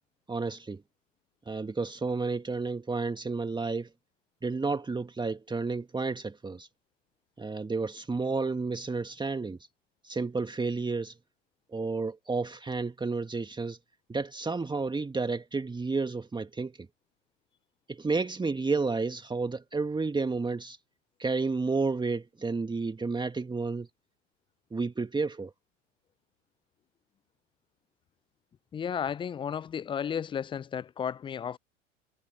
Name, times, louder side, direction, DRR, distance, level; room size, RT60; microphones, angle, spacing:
voice 1, 0.3-0.8 1.5-3.9 4.4-6.7 7.4-9.6 10.0-11.2 11.7-13.8 14.1-16.9 17.9-20.8 21.2-23.9 24.7-25.5, right 4 dB, 10° right, 2.0 m, -31 dB
voice 2, 28.7-31.6, left 8 dB, 15° left, 0.4 m, -33 dB
figure-of-eight pair, 80°, 38 cm